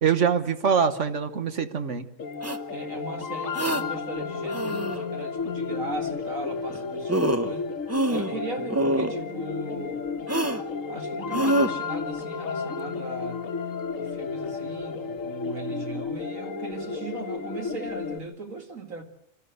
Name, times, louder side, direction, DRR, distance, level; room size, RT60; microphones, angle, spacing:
voice 1, 0.0-2.1, right 6 dB, 65° right, 1.5 m, -24 dB
sound 1, 2.2-18.2, left 5 dB, 75° left, 1.5 m, -32 dB
sound 2, 2.4-2.6 3.5-3.8 4.5-5.0 6.7-6.8 7.1-7.5 7.9-8.4 8.7-9.1 10.3-10.6 11.3-11.7, right 1 dB, 15° right, 0.7 m, -25 dB
voice 2, 2.7-7.7 8.1-10.1 10.9-13.6 14.0-19.0, right 3 dB, 90° right, 2.6 m, -38 dB
26.5 x 13.0 x 8.0 m
omnidirectional pair, 1.4 m